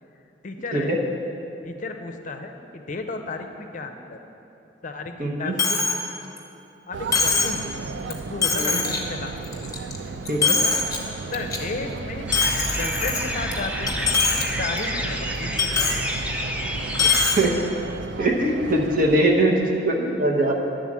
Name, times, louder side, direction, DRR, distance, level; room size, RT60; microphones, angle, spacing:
voice 1, 0.4-1.0 1.6-4.2 4.8-5.8 6.9-7.6 8.0-9.3 10.4-10.8 11.3-12.3 12.8-14.1 14.6-16.1 16.9-17.3 19.2-19.5, left 3 dB, 45° left, 5 dB, 0.5 m, -34 dB
voice 2, 5.2-5.6 8.6-8.8 10.3-10.6 17.4-17.6 18.2-20.5, right 1 dB, 50° right, 1 dB, 0.9 m, -21 dB
Coin (dropping), 5.6-6.0 6.4-6.5 7.1-7.6 8.1-8.2 8.4-9.0 9.4-10.0 10.3-11.0 11.3-11.6 12.3-13.5 13.9-14.4 14.8-14.9 15.6-16.0 16.9-17.4, left 4 dB, 20° left, 0.9 m, -22 dB
sound 1, 6.9-19.2, right 4 dB, 80° right, 0.4 m, -35 dB
sound 2, 12.3-17.3, equal, 5° right, 0.5 m, -29 dB
11.0 x 3.9 x 7.3 m, 2.9 s
head